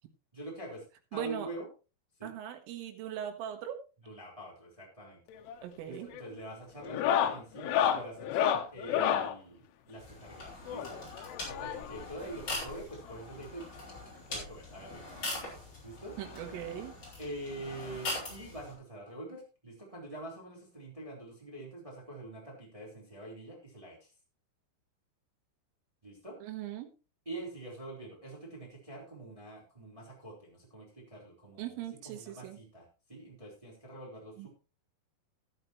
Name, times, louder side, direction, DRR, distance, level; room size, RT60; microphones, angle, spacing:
voice 1, 0.3-1.7 2.2-2.4 4.0-5.2 5.9-11.0 11.5-13.7 14.3-15.0 15.8-16.2 17.2-24.1 26.0-26.4 27.2-34.5, right 1 dB, 5° right, -2 dB, 3.4 m, -45 dB
voice 2, 1.1-1.5 2.2-3.8 5.6-6.1 16.2-16.9 26.4-26.9 31.6-32.6 34.4-34.5, right 10 dB, 80° right, 6 dB, 4.0 m, -39 dB
sound 1, 5.3-5.6 5.9-6.3 6.8-9.4 10.7-12.1 13.1-13.2 13.4-13.5 14.0-14.1 15.4-15.5 16.8-16.9, left 9 dB, 80° left, 3.4 m, -30 dB
sound 2, 10.0-18.7, left 2 dB, 25° left, 5.1 m, -42 dB
12.5 x 12.0 x 3.1 m, 0.31 s
omnidirectional pair, 5.8 m